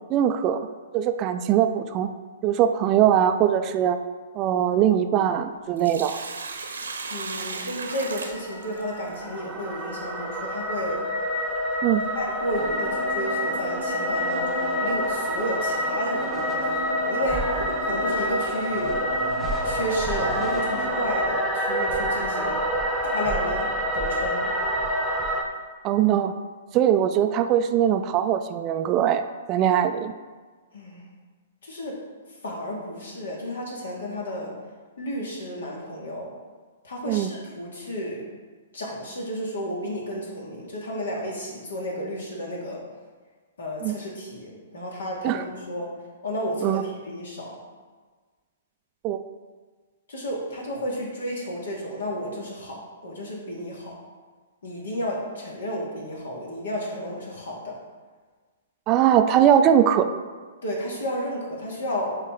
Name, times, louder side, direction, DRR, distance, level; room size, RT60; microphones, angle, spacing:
voice 1, 0.1-0.7 0.9-2.1 2.4-4.0 4.4-6.2 11.8-12.0 25.8-26.3 26.7-29.2 29.5-30.1 37.0-37.3 43.8-43.9 45.2-45.4 46.6-46.8 49.0-49.2 58.9-60.1, right 10 dB, 30° right, 8 dB, 0.5 m, -21 dB
Sink (filling or washing), 5.5-9.1 11.5-11.6 13.5-13.7 14.2-14.3 15.1-15.3 15.9-16.0 16.7-18.6, right 3 dB, 80° right, 1.0 m, -36 dB
voice 2, 7.1-11.0 12.1-19.0 19.6-24.5 30.7-31.0 31.6-32.0 32.3-34.5 35.0-36.3 36.8-38.2 38.7-42.8 43.6-45.9 46.2-47.6 50.1-53.9 54.6-57.8 60.6-62.2, equal, 70° left, -2 dB, 2.2 m, -32 dB
sound 1, 7.9-25.4, equal, 5° right, 1.0 m, -27 dB
sound 2, 12.5-20.9, right 2 dB, 10° left, 1.2 m, -37 dB
10.5 x 4.0 x 3.8 m, 1.4 s
figure-of-eight pair, 115°, 0 cm